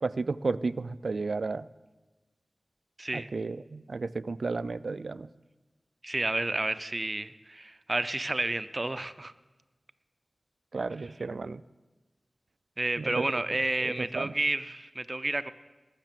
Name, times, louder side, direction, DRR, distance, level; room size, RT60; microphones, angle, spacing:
voice 1, 0.0-1.7 3.1-5.3 10.7-11.6 13.0-13.3 13.8-14.3, right 3 dB, 75° right, 16 dB, 0.4 m, -33 dB
voice 2, 3.0-3.3 6.0-9.3 12.8-15.5, right 2 dB, 40° right, 12 dB, 0.6 m, -31 dB
19.5 x 6.7 x 7.6 m, 1.2 s
cardioid pair, 45°, 0 cm